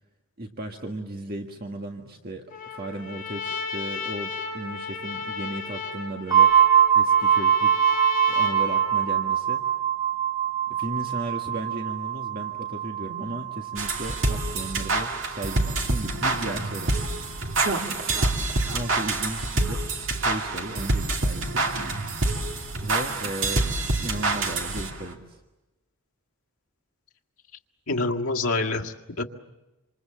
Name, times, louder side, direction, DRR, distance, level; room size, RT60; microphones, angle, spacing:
voice 1, 0.4-6.5 6.9-7.9 8.3-9.6 10.7-16.9 18.7-19.9 20.2-21.7 22.8-25.4, right 1 dB, 45° right, 2 dB, 1.7 m, -35 dB
Trumpet, 2.5-9.3, left 5 dB, 35° left, 6.1 m, -34 dB
sound 1, 6.3-15.9, right 9 dB, 15° right, 1.2 m, -23 dB
sound 2, 13.8-25.1, right 2 dB, 60° right, 2.5 m, -27 dB
voice 2, 27.9-29.2, left 2 dB, 85° left, 2 dB, 1.8 m, -26 dB
27.5 x 26.5 x 7.5 m, 1.0 s
head